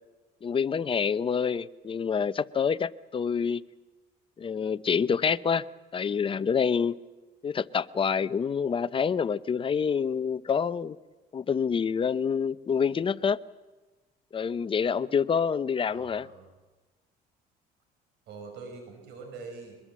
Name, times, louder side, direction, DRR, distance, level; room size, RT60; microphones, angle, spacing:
voice 1, 0.4-3.6 4.4-5.6 5.9-7.0 7.4-11.0 11.3-13.4 14.3-16.3, left 6 dB, 30° left, 0.7 m, -27 dB
voice 2, 15.9-16.5 18.3-19.8, right 4 dB, 80° right, 4.9 m, -44 dB
23.5 x 21.0 x 7.5 m
cardioid pair, 110°, 17 cm